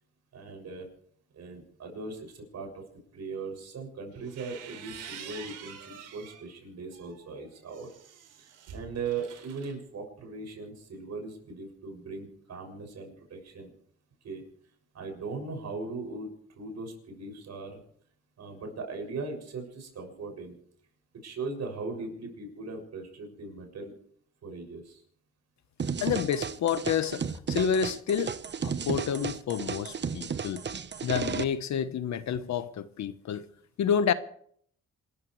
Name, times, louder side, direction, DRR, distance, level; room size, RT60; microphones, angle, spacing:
voice 1, 0.3-0.9 1.3-2.8 3.1-7.9 8.4-13.7 14.2-14.4 14.9-17.8 18.4-20.6 21.2-23.9 24.4-25.0, right 4 dB, 60° right, 6.9 m, -39 dB
sound 1, 4.1-6.5 6.9-9.7, right 8 dB, 85° right, 3.9 m, -46 dB
sound 2, 25.8-31.4, right 6 dB, 35° right, 1.1 m, -33 dB
voice 2, 26.0-27.2 27.5-28.4 28.6-30.6 31.0-33.4 33.8-34.1, left 8 dB, 65° left, 1.2 m, -29 dB
27.0 x 14.0 x 3.3 m
cardioid pair, 90°, 30 cm